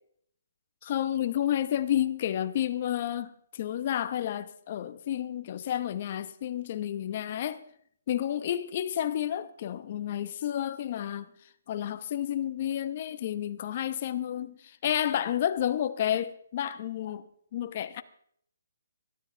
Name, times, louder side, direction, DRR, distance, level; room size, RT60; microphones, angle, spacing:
voice 1, 0.8-7.6 8.1-11.3 11.7-17.2 17.5-18.0, left 11 dB, 35° left, 1.0 m, -30 dB
21.0 x 12.5 x 3.4 m
hypercardioid pair, 170°, 0 cm